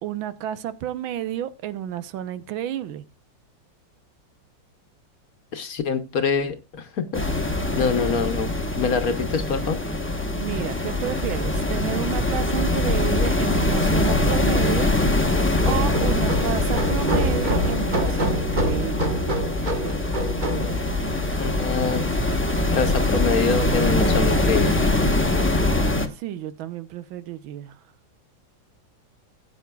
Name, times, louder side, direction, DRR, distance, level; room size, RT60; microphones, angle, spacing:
voice 1, 0.0-3.0 10.3-19.1 26.1-27.8, right 11 dB, 90° right, 1.6 m, -31 dB
voice 2, 5.5-7.2 7.7-8.5 8.7-9.8 21.4-22.0 22.7-24.7, left 5 dB, 55° left, 1.2 m, -25 dB
sound 1, 7.1-26.1, left 2 dB, 10° left, 0.6 m, -23 dB
sound 2, 15.6-21.6, equal, 25° right, 1.5 m, -26 dB
17.5 x 8.6 x 2.3 m
omnidirectional pair, 2.1 m